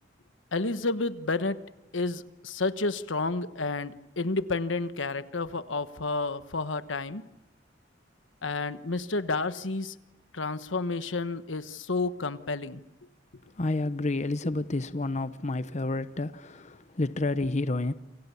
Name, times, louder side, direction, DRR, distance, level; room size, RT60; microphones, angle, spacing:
voice 1, 0.5-1.6 1.9-7.2 8.4-9.9 10.3-12.8 14.4-14.5, left 3 dB, 85° left, 1.3 m, -30 dB
voice 2, 13.6-17.9, left 2 dB, 40° left, 0.8 m, -30 dB
28.5 x 26.0 x 7.0 m
head